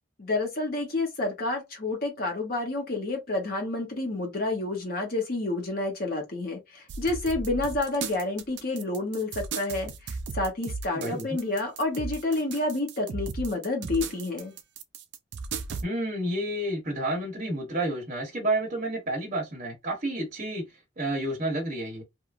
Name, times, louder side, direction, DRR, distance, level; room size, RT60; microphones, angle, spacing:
voice 1, 0.2-14.5, left 2 dB, 45° left, 0.8 m, -29 dB
sound 1, 6.9-15.8, right 4 dB, 55° right, 0.4 m, -36 dB
voice 2, 10.9-11.3 15.8-20.6 21.0-22.0, right 1 dB, 35° right, 0.9 m, -30 dB
2.9 x 2.4 x 2.4 m
head